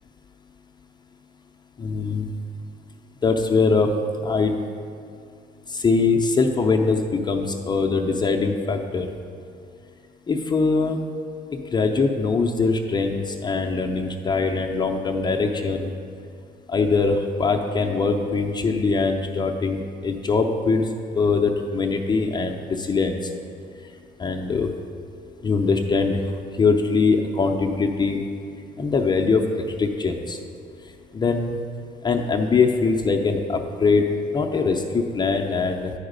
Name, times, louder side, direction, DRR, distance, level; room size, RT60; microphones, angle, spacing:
voice 1, 1.8-2.3 3.2-3.9 4.2-4.6 5.7-9.1 10.3-11.0 11.5-15.9 16.7-20.9 21.1-23.2 24.2-24.7 25.4-26.2 26.6-28.2 28.8-30.4 31.1-31.6 32.0-34.1 34.3-35.9, left 4 dB, 25° left, 2 dB, 0.5 m, -22 dB
8.8 x 4.8 x 5.1 m, 2.3 s
cardioid pair, 110°, 17 cm